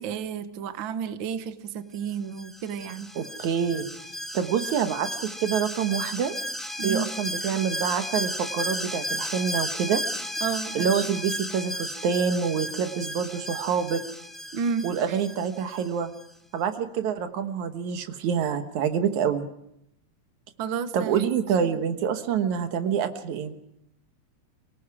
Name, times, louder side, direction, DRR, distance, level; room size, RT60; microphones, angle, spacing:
voice 1, 0.0-3.1 6.8-7.1 10.4-10.9 14.5-14.9 20.6-21.4, right 6 dB, 55° right, 10 dB, 1.5 m, -31 dB
Alarm, 2.4-15.9 16.2-16.3, equal, ahead, 0.4 m, -34 dB
voice 2, 3.2-3.9 4.3-6.3 6.8-10.0 10.7-14.0 14.8-16.1 16.5-19.5 20.9-23.5, right 7 dB, 80° right, 8 dB, 2.7 m, -26 dB
29.0 x 18.5 x 4.9 m, 0.79 s
omnidirectional pair, 3.3 m